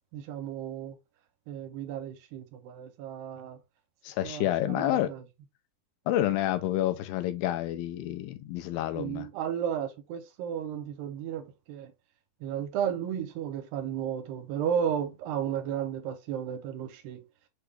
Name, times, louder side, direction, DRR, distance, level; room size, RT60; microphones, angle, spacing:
voice 1, 0.1-1.0 1.5-3.6 4.2-5.2 8.9-11.9 12.4-17.2, right 9 dB, 85° right, 2.3 m, -33 dB
voice 2, 4.0-5.1 6.1-9.3, left 13 dB, 85° left, 2.3 m, -29 dB
6.1 x 2.2 x 3.2 m
omnidirectional pair, 4.2 m